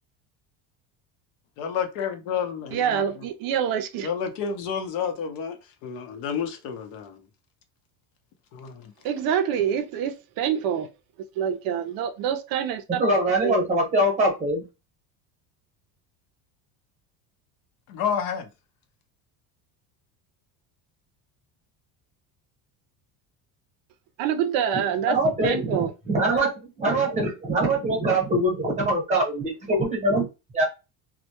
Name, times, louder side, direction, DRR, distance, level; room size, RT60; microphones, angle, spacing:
voice 1, 1.6-3.2 4.0-5.6 5.8-7.2 8.5-8.9 17.9-18.5, left 7 dB, 70° left, 0.7 m, -30 dB
voice 2, 2.7-4.1 9.0-10.9 11.4-13.6 24.2-25.9, right 8 dB, 60° right, 0.5 m, -26 dB
voice 3, 13.0-14.6 25.1-30.3 30.5-30.6, right 1 dB, 15° right, 0.8 m, -23 dB
2.1 x 2.1 x 2.8 m
cardioid pair, 150°, 41 cm